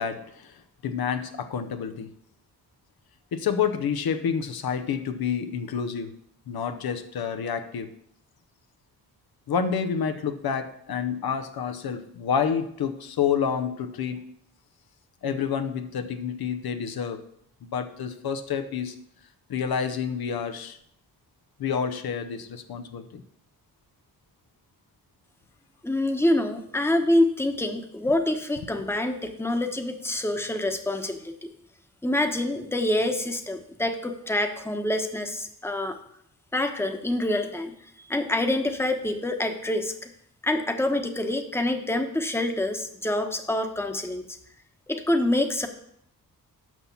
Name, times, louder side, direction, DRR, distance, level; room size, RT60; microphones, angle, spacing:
voice 1, 0.0-2.1 3.3-6.1 6.5-7.9 9.5-14.2 15.2-17.2 17.6-18.9 19.5-20.8 21.6-23.2, left 7 dB, 70° left, 8 dB, 0.8 m, -29 dB
voice 2, 25.8-31.5 32.0-36.0 36.5-37.7 38.1-40.1 40.4-44.2 44.9-45.7, left 1 dB, 5° left, 5 dB, 1.1 m, -26 dB
6.2 x 5.7 x 7.0 m, 0.72 s
cardioid pair, 65°, 38 cm